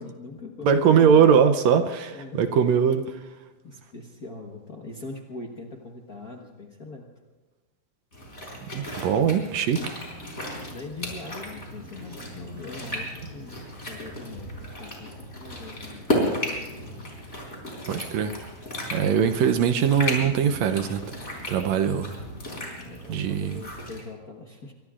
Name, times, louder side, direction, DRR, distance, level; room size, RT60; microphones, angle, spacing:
voice 1, 0.0-1.5 2.1-2.7 3.6-7.1 10.4-16.1 19.1-19.7 22.8-24.7, left 3 dB, 45° left, 0 dB, 1.3 m, -41 dB
voice 2, 0.6-3.2 8.7-10.0 17.9-18.3 18.9-21.0 21.5-22.2 23.1-23.6, right 7 dB, 75° right, 8 dB, 1.8 m, -21 dB
sound 1, 8.1-24.0, left 1 dB, 20° left, 4.5 m, -34 dB
24.0 x 23.0 x 2.5 m, 1.2 s
omnidirectional pair, 3.4 m